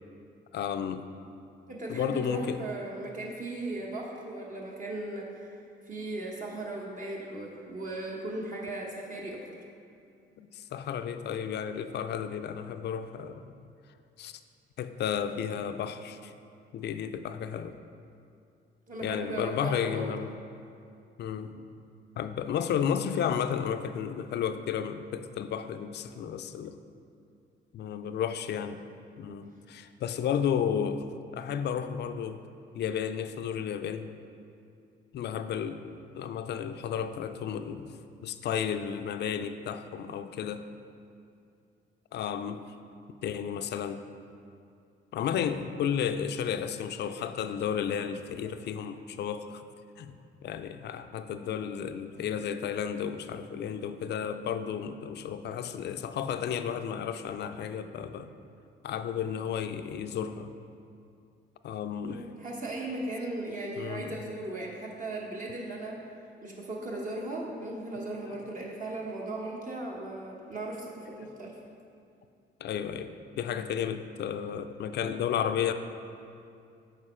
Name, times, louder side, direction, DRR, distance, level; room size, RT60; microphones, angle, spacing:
voice 1, 0.5-1.0 1.9-2.6 10.4-13.5 14.2-14.4 14.8-16.3 16.7-17.8 19.0-20.4 21.2-21.6 22.2-26.8 27.7-28.8 29.2-32.4 32.7-34.1 35.1-40.7 42.1-42.6 43.2-44.0 45.1-49.6 50.0-58.3 58.8-60.5 61.6-62.3 63.8-64.2 68.2-68.4 68.9-69.1 72.6-75.7, left 8 dB, 60° left, 10 dB, 0.4 m, -33 dB
voice 2, 1.7-5.6 5.9-9.4 18.9-20.1 62.0-66.0 66.4-71.6, right 2 dB, 40° right, -2 dB, 1.0 m, -37 dB
6.7 x 4.4 x 4.3 m, 2.5 s
cardioid pair, 90°, 20 cm